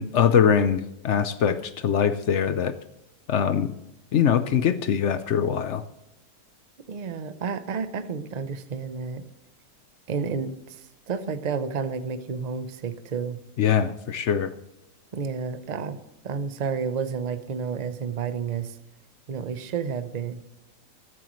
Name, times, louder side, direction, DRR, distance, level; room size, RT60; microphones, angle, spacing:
voice 1, 0.0-2.7 3.3-3.7 4.1-5.8 13.6-14.5, left 8 dB, 65° left, 12 dB, 0.7 m, -22 dB
voice 2, 6.9-9.2 10.1-13.4 15.1-16.0 16.2-18.8 19.3-20.4, right 6 dB, 55° right, 11 dB, 0.4 m, -31 dB
14.0 x 13.0 x 3.1 m, 0.85 s
omnidirectional pair, 1.8 m